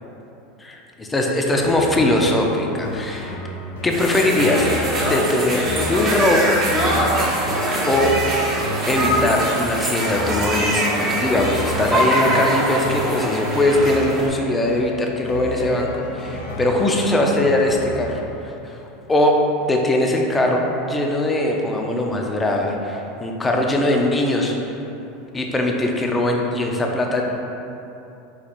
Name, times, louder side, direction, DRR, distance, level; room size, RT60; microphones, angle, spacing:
voice 1, 1.1-3.3 3.8-5.6 5.9-6.5 7.9-8.1 8.9-18.8 19.1-20.6 20.9-24.6 25.3-27.2, left 1 dB, 15° left, 0 dB, 0.5 m, -20 dB
sound 1, 1.4-18.2, equal, 85° left, 0.5 m, -33 dB
sound 2, 3.9-14.3, right 1 dB, 35° right, 1.0 m, -23 dB
4.4 x 2.3 x 4.3 m, 2.9 s
hypercardioid pair, 100°, 0 cm